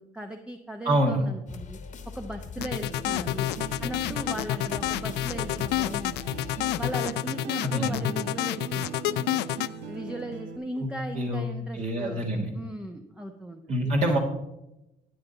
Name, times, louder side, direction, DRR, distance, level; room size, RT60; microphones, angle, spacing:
voice 1, 0.0-1.8 2.1-3.5 3.8-6.4 6.8-9.5 9.9-13.9, right 1 dB, 5° right, 4 dB, 0.8 m, -38 dB
voice 2, 0.8-1.2 7.6-8.0 10.8-10.9 11.1-11.4 11.7-12.5 13.7-14.2, right 1 dB, 45° right, 0 dB, 1.7 m, -25 dB
sound 1, 1.5-6.9, left 5 dB, 45° left, 1.3 m, -42 dB
here we go low, 2.6-9.7, left 16 dB, 80° left, 0.4 m, -29 dB
sound 2, 2.6-10.6, right 5 dB, 75° right, 1.2 m, -40 dB
12.5 x 8.9 x 4.0 m, 0.92 s
cardioid pair, 110°, 17 cm